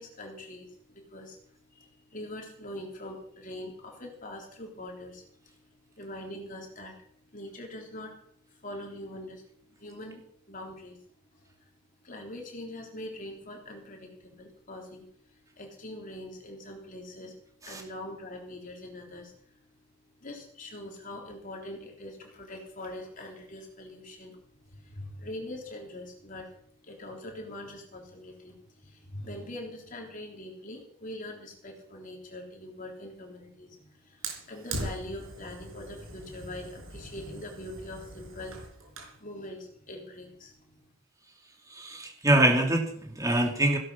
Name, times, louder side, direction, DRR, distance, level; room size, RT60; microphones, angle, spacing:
voice 1, 0.0-5.6 6.0-8.2 8.5-11.0 11.3-11.7 12.0-19.6 20.2-26.5 26.8-40.9, left 1 dB, 40° left, 1 dB, 3.6 m, -43 dB
Fire, 34.2-39.2, right 2 dB, 75° right, 4.7 m, -41 dB
voice 2, 41.7-43.8, right 1 dB, 15° right, 2 dB, 2.5 m, -24 dB
16.5 x 11.5 x 5.8 m, 0.64 s
head